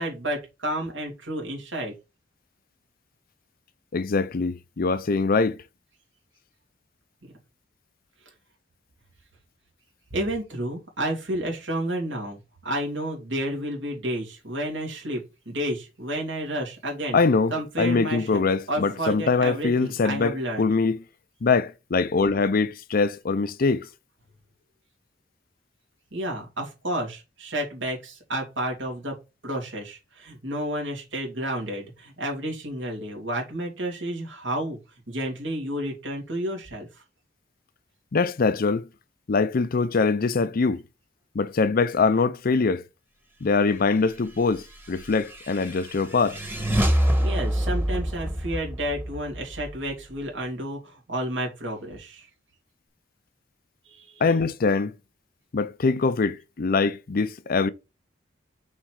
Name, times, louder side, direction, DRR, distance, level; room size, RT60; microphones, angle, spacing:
voice 1, 0.0-1.9 10.1-12.4 12.6-17.2 17.5-20.7 26.1-29.2 29.4-34.8 35.1-36.9 47.2-52.3 53.9-54.2, right 1 dB, 75° right, 3.0 m, -31 dB
voice 2, 3.9-5.6 17.1-21.0 21.4-23.9 38.1-38.9 39.3-40.8 41.3-42.8 43.4-46.4 54.2-54.9 55.5-57.7, left 4 dB, 50° left, 0.5 m, -23 dB
sound 1, 44.7-50.3, equal, 10° right, 1.4 m, -27 dB
6.3 x 4.4 x 4.7 m
head